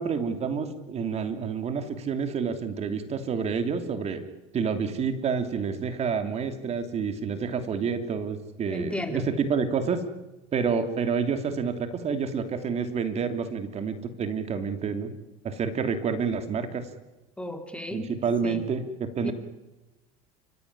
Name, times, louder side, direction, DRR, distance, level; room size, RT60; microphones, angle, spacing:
voice 1, 0.0-4.2 4.5-10.0 10.5-15.1 15.4-16.9 17.9-19.3, right 6 dB, 40° right, 8 dB, 3.0 m, -28 dB
voice 2, 8.7-9.3 17.4-18.2 18.4-18.7 19.2-19.3, left 1 dB, 5° left, 7 dB, 2.8 m, -34 dB
30.0 x 15.0 x 9.8 m, 1.1 s
supercardioid pair, 95°, 17 cm